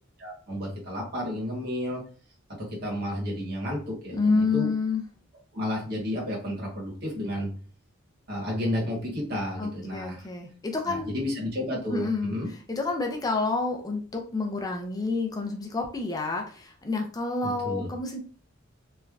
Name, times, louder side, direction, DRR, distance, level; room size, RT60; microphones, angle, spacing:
voice 1, 0.2-2.0 2.6-4.7 5.5-7.5 8.3-10.3 10.9-12.5 17.4-17.9, left 1 dB, 50° right, -2 dB, 1.2 m, -32 dB
voice 2, 4.1-5.0 9.6-11.1 11.9-12.4 12.7-18.2, left 3 dB, 20° left, 2 dB, 0.4 m, -28 dB
3.1 x 2.2 x 2.4 m, 0.41 s
head